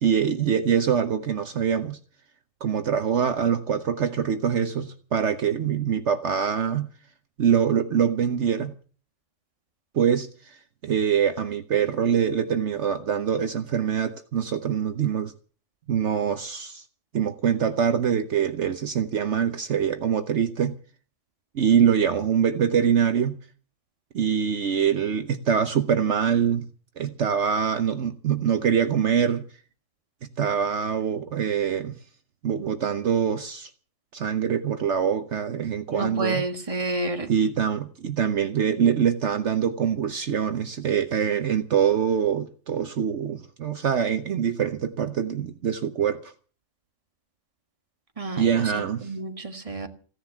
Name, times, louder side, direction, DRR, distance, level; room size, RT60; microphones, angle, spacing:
voice 1, 0.0-2.0 2.6-6.9 7.4-8.7 9.9-15.3 15.9-16.8 17.1-20.8 21.5-23.4 24.1-26.6 27.0-29.4 30.4-32.0 32.4-33.7 34.1-36.4 37.3-46.3 48.4-49.1, right 8 dB, 65° right, 1.2 m, -24 dB
voice 2, 35.9-37.3 48.2-49.9, right 2 dB, 25° right, 1.8 m, -30 dB
16.0 x 11.0 x 7.3 m
omnidirectional pair, 1.3 m